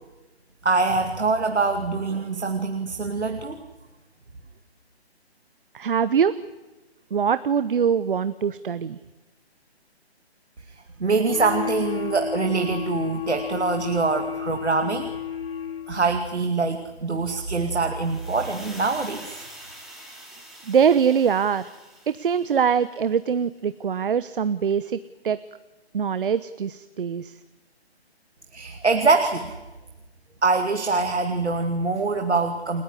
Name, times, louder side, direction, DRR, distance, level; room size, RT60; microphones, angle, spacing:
voice 1, 0.6-3.6 11.0-15.1 15.9-19.4 28.5-29.6 30.4-32.8, right 3 dB, 90° right, 6 dB, 2.4 m, -24 dB
voice 2, 5.7-6.4 7.1-9.0 20.7-21.8 22.1-25.4 25.9-27.4, right 7 dB, 55° right, 14 dB, 0.9 m, -23 dB
sound 1, 11.3-16.1, left 7 dB, 60° left, 3.4 m, -32 dB
sound 2, 17.9-23.0, right 1 dB, ahead, 3.9 m, -45 dB
29.5 x 16.0 x 10.0 m, 1.1 s
figure-of-eight pair, 150°, 33 cm